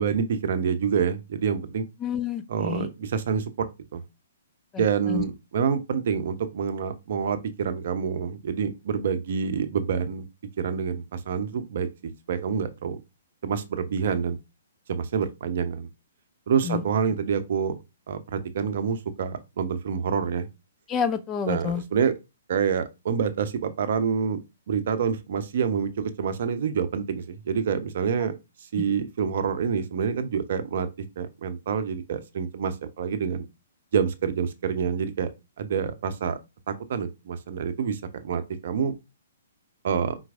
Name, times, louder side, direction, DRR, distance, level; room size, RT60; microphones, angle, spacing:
voice 1, 0.0-1.8 2.5-3.7 3.9-4.0 4.8-10.2 10.6-13.0 13.4-14.4 14.9-15.9 16.5-17.8 18.1-20.5 21.5-22.1 22.5-24.4 24.7-28.3 28.7-30.9 31.2-33.4 33.9-35.3 35.6-36.4 36.7-38.9 39.8-40.2, right 7 dB, 50° right, 0.6 m, -27 dB
voice 2, 2.0-2.9 4.7-5.2 16.6-16.8 20.9-21.8 28.8-28.9, left 7 dB, 20° left, 0.4 m, -29 dB
4.5 x 3.9 x 2.5 m
figure-of-eight pair, 120°, 0 cm